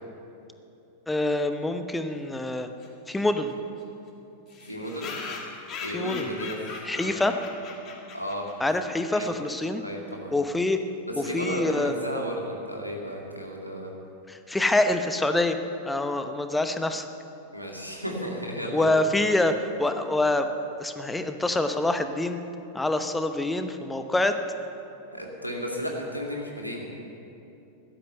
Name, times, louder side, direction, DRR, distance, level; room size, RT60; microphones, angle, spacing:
voice 1, 1.1-2.7 3.1-3.5 5.9-6.2 6.8-7.3 8.6-9.8 10.3-10.8 11.2-11.9 14.3-15.6 15.8-17.1 18.7-20.5 20.8-22.4 22.7-24.4, left 2 dB, 5° left, 8 dB, 0.9 m, -26 dB
sound 1, 2.8-2.9 3.1-3.2 3.5-3.6 3.8-3.9 4.5-8.7, left 4 dB, 30° left, 2.3 m, -39 dB
voice 2, 4.6-5.1 5.8-7.2 8.1-8.5 9.1-9.3 9.8-10.3 11.1-13.9 17.5-19.0 25.1-26.9, equal, 90° right, -1 dB, 2.3 m, -33 dB
16.0 x 12.0 x 6.8 m, 2.8 s
figure-of-eight pair, 90°, 0 cm